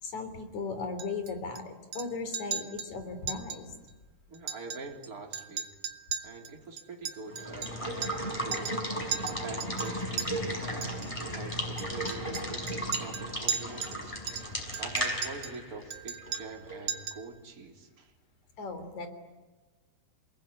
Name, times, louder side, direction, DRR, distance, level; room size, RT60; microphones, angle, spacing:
voice 1, 0.0-3.7 18.6-19.1, left 4 dB, 45° left, 8 dB, 4.5 m, -37 dB
Chink clink, 1.0-1.6 1.9-2.1 2.3-2.9 3.3-3.6 3.9-4.0 4.3-5.1 5.3-8.3 8.5-8.8 9.1-10.3 10.8-11.1 11.8-14.0 14.3-15.6 15.9-16.6 16.9-17.3, right 7 dB, 60° right, 1.6 m, -37 dB
voice 2, 4.3-5.7 6.2-8.7 9.3-14.2 14.8-18.1, right 3 dB, 20° right, 1 dB, 3.6 m, -45 dB
Water / Water tap faucet / Liquid, 7.3-16.9, equal, 5° left, 5.1 m, -35 dB
29.0 x 20.5 x 9.9 m, 1.3 s
omnidirectional pair, 4.7 m